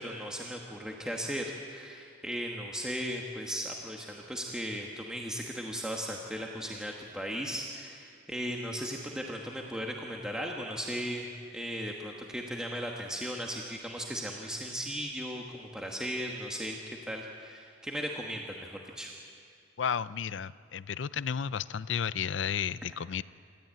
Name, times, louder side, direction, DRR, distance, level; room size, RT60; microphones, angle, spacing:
voice 1, 0.0-16.8 17.1-19.1, equal, 5° right, -1 dB, 1.4 m, -37 dB
voice 2, 19.8-23.2, left 7 dB, 65° left, 17 dB, 0.5 m, -32 dB
27.5 x 13.5 x 8.8 m, 2.3 s
head